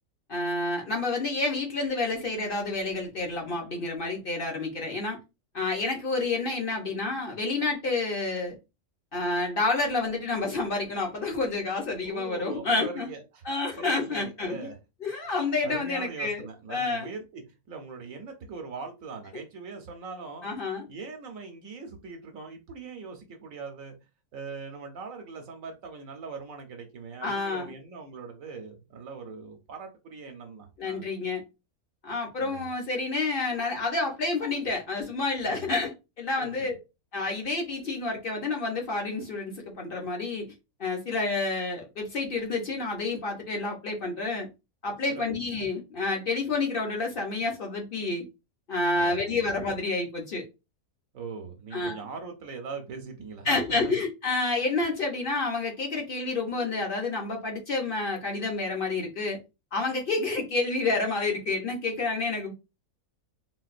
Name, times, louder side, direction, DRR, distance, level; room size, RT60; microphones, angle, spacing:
voice 1, 0.3-5.2 5.5-8.6 9.1-13.1 13.4-14.7 15.0-17.1 20.4-20.9 27.2-27.7 30.8-31.4 32.0-36.8 37.1-40.5 40.8-44.5 44.8-48.2 48.7-50.4 51.7-52.0 53.5-59.4 59.7-62.5, left 3 dB, 50° left, 0.8 m, -29 dB
voice 2, 12.0-13.4 13.8-14.8 15.6-17.4 17.7-20.5 20.9-23.9 24.3-31.1 32.4-32.7 35.5-35.6 36.4-36.7 49.0-49.4 51.1-53.9, right 4 dB, 70° right, 1.1 m, -41 dB
3.9 x 2.2 x 2.4 m
omnidirectional pair, 1.5 m